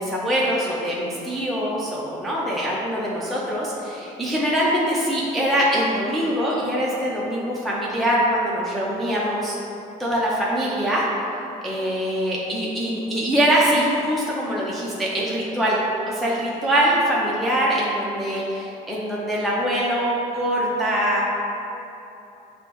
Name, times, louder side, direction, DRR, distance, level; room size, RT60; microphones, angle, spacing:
voice 1, 0.0-9.6 10.0-11.1 11.6-15.8 16.1-21.4, equal, ahead, -6 dB, 0.4 m, -23 dB
6.0 x 2.0 x 3.0 m, 2.9 s
cardioid pair, 110°, 17 cm